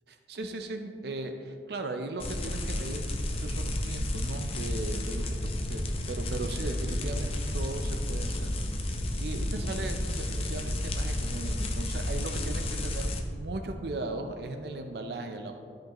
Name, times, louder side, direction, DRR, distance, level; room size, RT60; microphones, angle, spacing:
voice 1, 0.1-5.4 5.7-8.5 9.2-15.5, right 2 dB, 65° right, 5 dB, 0.5 m, -37 dB
sound 1, 2.2-13.2, left 1 dB, 35° left, 0.6 m, -31 dB
13.0 x 5.1 x 3.0 m, 2.5 s
head